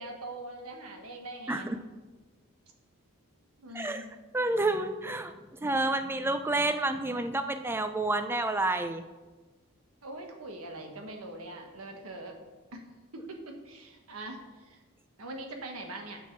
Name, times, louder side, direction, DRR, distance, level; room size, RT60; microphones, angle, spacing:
voice 1, 0.0-1.8 3.6-4.0 10.0-12.4 12.7-12.8 13.1-14.8 15.2-16.2, right 2 dB, 85° right, 3 dB, 1.4 m, -42 dB
voice 2, 1.5-1.8 3.7-4.1 4.3-9.0, right 2 dB, 10° right, 8 dB, 0.4 m, -29 dB
7.6 x 7.1 x 5.9 m, 1.2 s
head